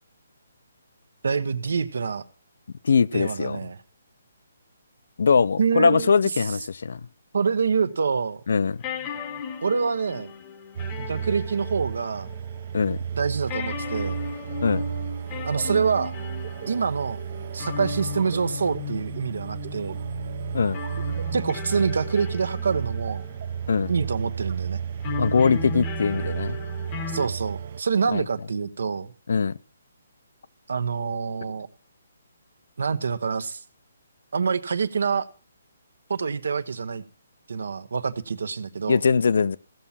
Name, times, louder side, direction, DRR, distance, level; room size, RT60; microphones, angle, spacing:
voice 1, 1.2-2.2 3.1-3.8 5.6-6.2 7.3-8.4 9.6-10.3 11.0-12.3 13.1-14.2 15.5-16.1 16.7-17.2 17.5-20.0 21.3-23.2 23.9-24.8 27.1-29.1 30.7-31.7 32.8-33.6 34.3-35.3 36.1-37.0 37.5-39.0, right 5 dB, 70° right, 1.1 m, -26 dB
voice 2, 2.8-3.6 5.2-7.0 8.5-8.8 12.7-13.0 14.6-14.8 20.5-20.8 23.7-23.9 25.2-26.6 28.1-28.2 29.3-29.5 38.9-39.6, left 5 dB, 65° left, 0.5 m, -21 dB
sound 1, 7.9-8.0 8.8-12.6 12.9-13.0 13.5-24.0 25.0-27.3, left 7 dB, 15° left, 0.8 m, -36 dB
sound 2, 10.8-27.8, right 8 dB, 40° right, 0.6 m, -33 dB
15.5 x 7.4 x 5.7 m
hypercardioid pair, 170°, 0 cm